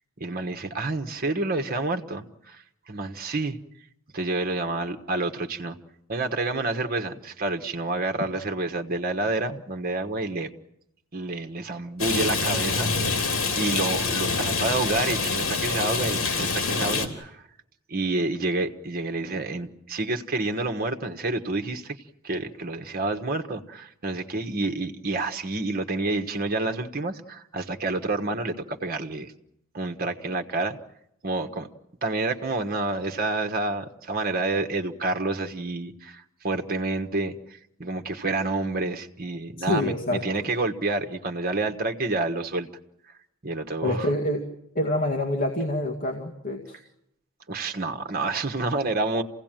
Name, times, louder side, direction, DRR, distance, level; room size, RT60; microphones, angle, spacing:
voice 1, 0.2-3.6 4.1-5.8 6.1-10.5 11.1-13.2 13.5-17.4 17.9-22.0 22.2-29.3 29.7-30.8 31.2-31.7 32.0-42.7 43.4-44.1 47.5-49.2, right 2 dB, 45° right, 6 dB, 1.3 m, -29 dB
Rain, 12.0-17.1, left 4 dB, 80° left, 3.1 m, -26 dB
voice 2, 39.6-40.5 43.8-44.4 44.8-46.8, left 1 dB, 40° left, 1 dB, 2.0 m, -27 dB
27.5 x 17.0 x 9.0 m, 0.80 s
head